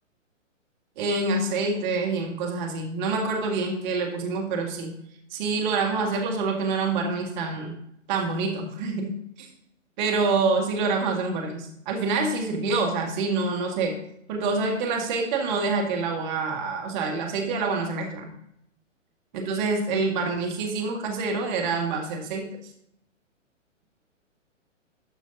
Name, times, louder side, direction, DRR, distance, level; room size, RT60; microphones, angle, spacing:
voice 1, 1.0-4.9 5.3-7.8 8.1-9.1 9.4-9.5 10.0-14.0 14.3-18.3 19.3-22.5, right 3 dB, 35° right, 1 dB, 1.9 m, -26 dB
13.0 x 5.7 x 2.7 m, 0.74 s
figure-of-eight pair, 120°, 38 cm